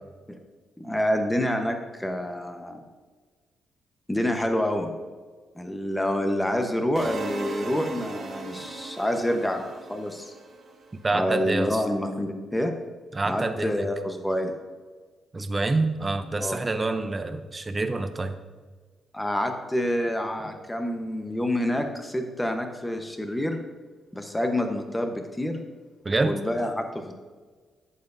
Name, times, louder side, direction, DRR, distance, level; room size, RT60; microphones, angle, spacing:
voice 1, 0.8-2.8 4.1-4.9 5.5-10.3 11.1-12.7 13.2-14.5 16.4-16.6 19.1-23.6 24.1-25.6 26.2-27.2, left 1 dB, 10° left, 4 dB, 1.1 m, -27 dB
sound 1, 7.0-11.0, right 3 dB, 50° right, 1.4 m, -37 dB
voice 2, 11.0-11.8 13.1-13.9 15.3-18.4 26.0-26.4, right 3 dB, 25° right, 9 dB, 0.7 m, -27 dB
11.0 x 7.7 x 2.7 m, 1.5 s
cardioid pair, 90°, 0 cm